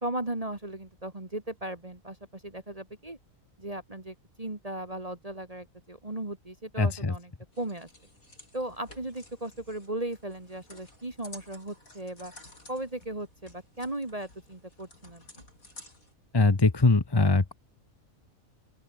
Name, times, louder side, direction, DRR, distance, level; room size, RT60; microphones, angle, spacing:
voice 1, 0.0-3.2 3.6-7.3 7.6-7.9 8.5-12.3 12.7-15.2, right 1 dB, 25° right, 2.4 m, -37 dB
voice 2, 6.8-7.1 16.3-17.5, left 3 dB, 20° left, 1.0 m, -22 dB
sound 1, 7.5-16.1, left 2 dB, 85° left, 8.1 m, -53 dB
open air
omnidirectional pair, 1.4 m